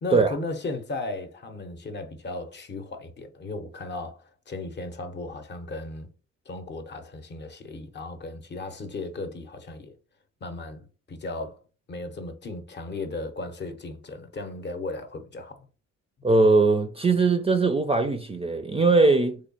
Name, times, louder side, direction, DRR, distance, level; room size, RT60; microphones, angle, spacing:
voice 1, 0.0-6.1 6.5-9.9 10.4-11.6 11.9-15.7, left 2 dB, 35° left, 0.7 m, -36 dB
voice 2, 16.2-19.4, right 3 dB, 20° right, 0.4 m, -20 dB
3.3 x 2.3 x 3.9 m
cardioid pair, 90°, 30 cm